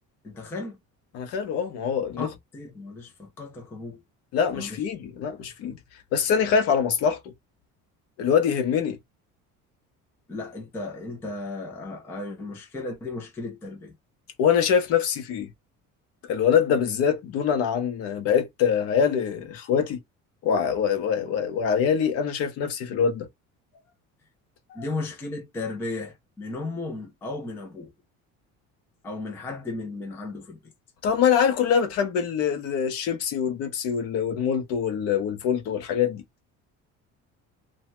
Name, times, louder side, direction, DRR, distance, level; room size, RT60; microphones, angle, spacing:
voice 1, 0.2-0.8 2.2-2.3 2.5-4.0 4.5-4.8 10.3-13.9 24.7-27.9 29.0-30.6, left 2 dB, 10° left, 0.3 m, -35 dB
voice 2, 1.1-2.3 4.3-5.8 6.1-7.2 8.2-9.0 14.4-15.5 16.3-20.0 20.4-23.3 24.7-24.8 31.0-36.2, left 7 dB, 50° left, 0.7 m, -24 dB
2.7 x 2.2 x 2.9 m
cardioid pair, 180°, 31 cm